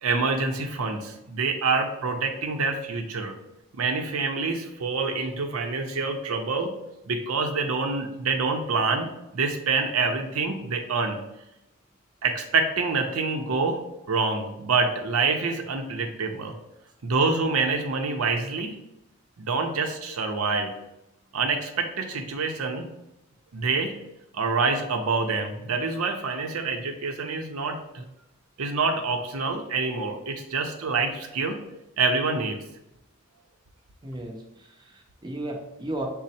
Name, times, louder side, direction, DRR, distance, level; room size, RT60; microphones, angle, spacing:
voice 1, 0.0-3.4 3.8-6.7 7.0-11.2 12.2-13.8 14.1-16.5 17.0-18.8 19.4-20.7 21.3-22.9 23.5-23.9 24.3-28.0 28.6-31.6 32.0-32.6, right 4 dB, 85° right, 4 dB, 0.6 m, -26 dB
voice 2, 34.0-36.1, right 1 dB, 20° right, 1 dB, 0.6 m, -35 dB
6.2 x 2.1 x 4.1 m, 0.88 s
head